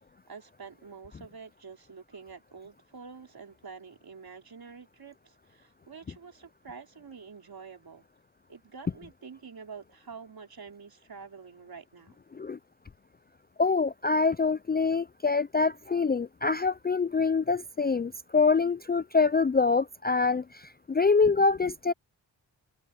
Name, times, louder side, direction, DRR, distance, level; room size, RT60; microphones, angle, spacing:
voice 1, 0.3-8.1 8.5-12.2, right 5 dB, 50° right, 3.8 m, -47 dB
voice 2, 13.6-20.4 20.9-21.9, left 4 dB, 20° left, 0.4 m, -25 dB
cardioid pair, 60°, 45 cm